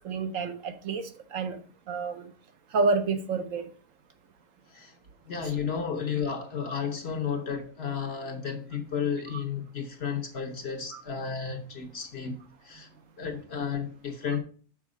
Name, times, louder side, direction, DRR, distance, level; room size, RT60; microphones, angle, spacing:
voice 1, 0.0-1.6 1.9-2.3 2.7-3.6 10.9-11.0, right 4 dB, 65° right, 1.1 m, -29 dB
voice 2, 5.3-12.4 12.6-12.9 13.2-14.4, left 6 dB, 55° left, 0.9 m, -32 dB
6.2 x 4.4 x 4.8 m
omnidirectional pair, 1.5 m